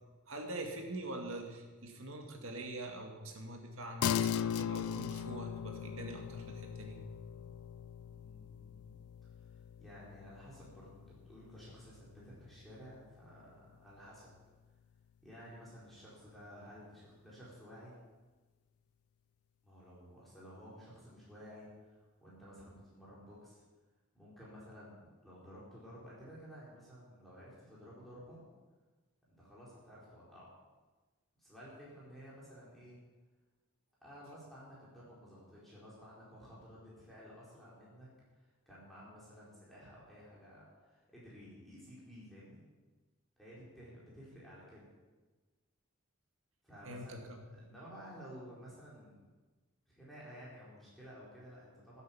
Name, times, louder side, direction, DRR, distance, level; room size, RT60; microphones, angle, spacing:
voice 1, 0.3-7.0 7.3-7.5 46.8-47.5, right 1 dB, 70° right, 2 dB, 2.2 m, -44 dB
sound 1, 4.0-13.7, left 9 dB, 85° left, 0.3 m, -40 dB
voice 2, 8.1-9.0 9.8-14.3 15.2-17.9 19.6-23.6 24.1-28.4 29.3-30.5 31.4-33.0 34.0-38.1 38.7-42.6 43.4-44.9 46.6-47.2 47.5-49.2 49.9-52.0, equal, ahead, -8 dB, 4.5 m, -53 dB
14.5 x 8.3 x 7.3 m, 1.3 s
head